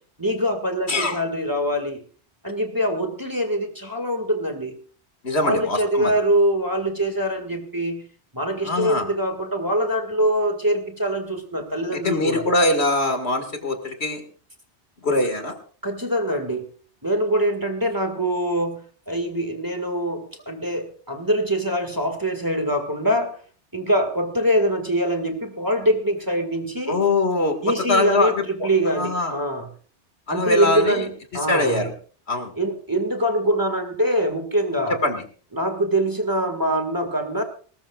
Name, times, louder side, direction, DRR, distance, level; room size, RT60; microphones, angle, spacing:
voice 1, 0.2-2.0 2.4-4.7 5.4-8.1 8.3-12.4 15.8-16.7 17.0-23.4 23.7-27.0 27.6-29.7 30.3-31.8 32.6-35.0 35.5-37.4, equal, 20° right, 5 dB, 1.9 m, -24 dB
voice 2, 5.2-6.1 8.6-9.1 11.9-14.2 15.0-15.5 26.9-29.3 30.3-31.1 31.5-31.9 32.3-32.5 35.0-35.2, left 2 dB, 65° left, 7 dB, 2.3 m, -23 dB
20.5 x 19.0 x 2.4 m, 0.41 s
omnidirectional pair, 1.2 m